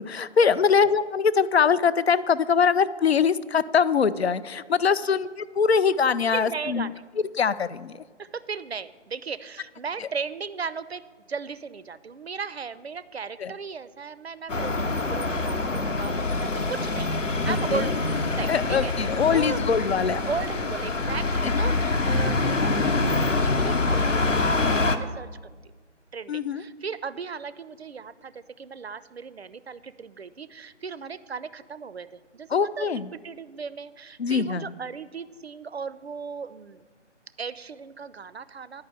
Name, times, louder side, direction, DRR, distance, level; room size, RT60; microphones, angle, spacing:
voice 1, 0.0-6.9 7.4-7.9 10.0-10.1 13.4-13.5 17.5-17.9 18.5-20.2 21.4-21.5 22.0-22.3 26.3-26.6 32.5-33.1 34.2-34.7, left 6 dB, 60° left, 16 dB, 0.5 m, -23 dB
voice 2, 6.3-7.0 8.2-11.0 11.3-17.1 17.4-18.0 18.4-19.9 20.3-25.3 26.1-36.8 37.4-38.8, right 5 dB, 60° right, 16 dB, 0.5 m, -36 dB
sound 1, 14.5-25.0, left 3 dB, 85° left, 1.0 m, -25 dB
10.5 x 5.7 x 8.4 m, 1.4 s
figure-of-eight pair, 160°, 37 cm